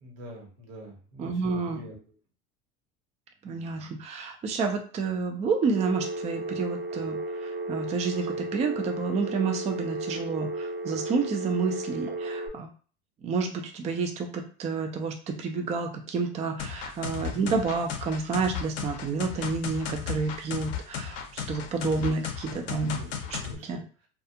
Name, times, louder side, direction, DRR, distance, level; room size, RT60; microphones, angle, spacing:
voice 1, 0.0-1.9 17.0-17.5 22.5-23.2 23.4-23.8, left 1 dB, 75° right, 0 dB, 1.1 m, -45 dB
voice 2, 1.2-1.8 3.4-12.7 13.2-23.0 23.3-23.8, right 4 dB, 25° right, 4 dB, 0.4 m, -30 dB
Telephone, 5.7-12.5, right 2 dB, 40° right, 0.7 m, -34 dB
sound 1, 16.6-23.5, left 8 dB, 55° left, 0.6 m, -35 dB
2.3 x 2.3 x 2.7 m, 0.39 s
hypercardioid pair, 90°, 30 cm